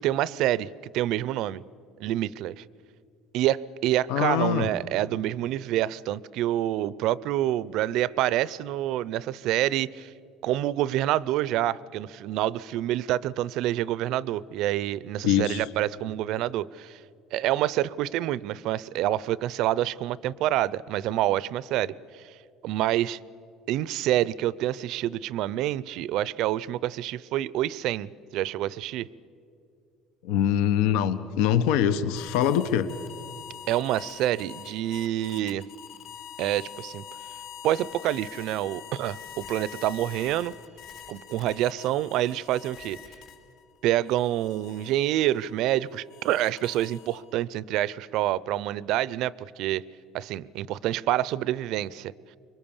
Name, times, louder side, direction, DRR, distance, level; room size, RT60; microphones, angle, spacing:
voice 1, 0.0-1.6 2.0-2.6 3.3-10.1 10.4-17.0 17.3-22.4 22.6-23.2 23.7-29.1 33.7-35.7 36.4-37.0 37.6-40.5 41.1-43.0 43.8-49.8 50.1-52.1, right 13 dB, 60° right, 21 dB, 0.5 m, -27 dB
voice 2, 4.1-4.7 15.2-15.6 30.2-32.9, left 10 dB, 85° left, 13 dB, 0.9 m, -23 dB
sound 1, 32.2-43.6 44.1-47.4, left 9 dB, 55° left, 4.9 m, -45 dB
25.5 x 23.0 x 7.2 m, 2.4 s
cardioid pair, 160°, 0 cm